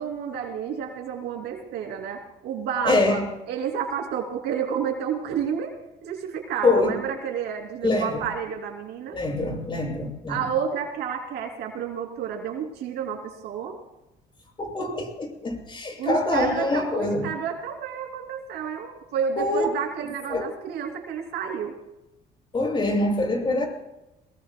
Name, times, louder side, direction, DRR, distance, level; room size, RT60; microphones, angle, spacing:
voice 1, 0.0-5.7 6.0-9.2 10.3-13.8 16.0-21.7, right 7 dB, 80° right, 2 dB, 3.1 m, -30 dB
voice 2, 2.8-3.3 6.6-7.0 7.8-8.2 9.1-10.4 14.6-17.3 19.4-19.6 20.3-20.5 22.5-23.6, left 2 dB, 30° left, 1 dB, 6.9 m, -24 dB
22.5 x 22.0 x 2.3 m, 0.95 s
cardioid pair, 110°, 17 cm